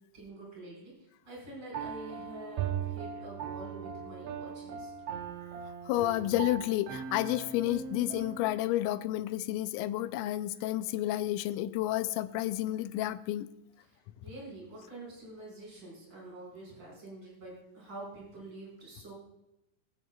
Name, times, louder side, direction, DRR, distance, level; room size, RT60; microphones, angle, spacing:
voice 1, 0.1-0.9 1.3-4.9 13.9-19.1, right 2 dB, 40° right, -4 dB, 5.6 m, -46 dB
Piano, 1.7-8.6, right 6 dB, 70° right, 1.5 m, -41 dB
Bowed string instrument, 2.6-5.1, right 13 dB, 90° right, 2.2 m, -39 dB
voice 2, 5.9-13.5, left 14 dB, 85° left, 12 dB, 2.1 m, -31 dB
19.5 x 9.1 x 2.3 m, 0.87 s
omnidirectional pair, 3.6 m